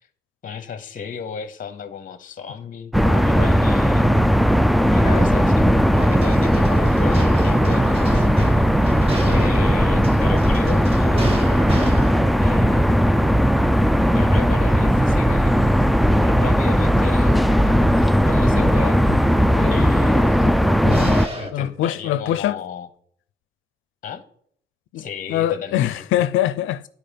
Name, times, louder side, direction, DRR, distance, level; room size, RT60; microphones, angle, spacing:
voice 1, 0.4-4.1 4.9-8.3 9.2-11.3 12.4-13.5 14.1-15.8 16.2-19.0 19.7-20.8 21.3-22.9 24.0-24.2 24.9-26.0, left 6 dB, 40° left, 0.9 m, -34 dB
sound 1, 2.9-21.3, equal, ahead, 0.3 m, -17 dB
sound 2, 5.8-16.4 20.7-21.5, right 2 dB, 30° right, 1.9 m, -34 dB
voice 2, 19.5-20.0 20.5-20.6 20.8-21.2 21.5-22.6 24.9-26.8, left 12 dB, 80° left, 0.5 m, -24 dB
10.5 x 4.7 x 5.1 m
cardioid pair, 90°, 20 cm